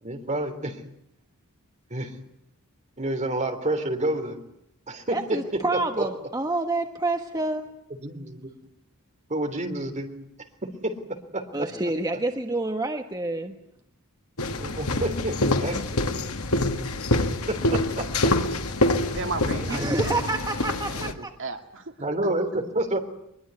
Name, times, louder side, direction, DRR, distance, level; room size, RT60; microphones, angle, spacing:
voice 1, 0.0-0.8 1.9-2.1 3.0-4.4 4.9-6.1 8.0-8.5 9.3-10.1 10.6-11.0 11.3-11.5 14.6-15.8 17.5-18.1 19.7-19.9 22.0-23.0, right 1 dB, 35° right, 6 dB, 3.3 m, -29 dB
voice 2, 5.1-7.7 11.5-13.6 19.7-21.3, right 2 dB, 15° right, 5 dB, 1.3 m, -28 dB
sound 1, 14.4-21.1, left 2 dB, 70° left, 2.0 m, -26 dB
voice 3, 19.1-20.2 20.6-22.2, right 3 dB, 60° right, 5 dB, 2.4 m, -35 dB
23.5 x 22.0 x 9.6 m, 0.79 s
head